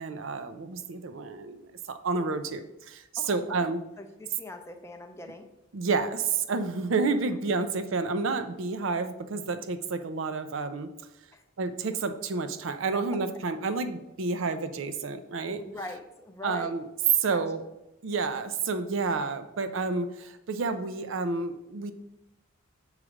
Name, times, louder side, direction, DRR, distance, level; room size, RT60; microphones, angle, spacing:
voice 1, 0.0-3.8 5.7-10.9 11.6-15.6 16.4-16.9 17.2-17.6 18.0-21.9, right 4 dB, 70° right, 10 dB, 0.5 m, -30 dB
voice 2, 3.2-5.5 11.3-11.4 13.1-13.2 15.6-16.8 17.3-17.4, left 2 dB, 15° left, 5 dB, 0.5 m, -42 dB
7.1 x 3.2 x 4.9 m, 0.90 s
head